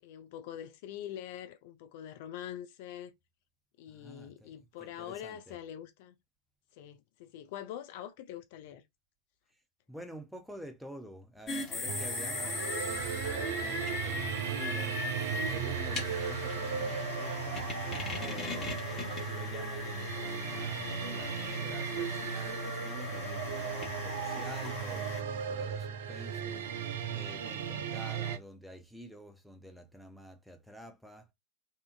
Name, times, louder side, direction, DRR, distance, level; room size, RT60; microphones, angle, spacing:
voice 1, 0.0-3.1 3.8-6.1 6.7-8.8, left 10 dB, 50° left, 0.3 m, -44 dB
voice 2, 3.9-4.5 4.8-5.6 9.9-17.7 18.2-31.3, equal, ahead, 0.6 m, -49 dB
sound 1, 11.5-25.2, left 2 dB, 25° left, 1.1 m, -38 dB
sound 2, 11.9-28.4, right 8 dB, 55° right, 0.4 m, -37 dB
2.7 x 2.5 x 2.5 m
figure-of-eight pair, 90°, 0 cm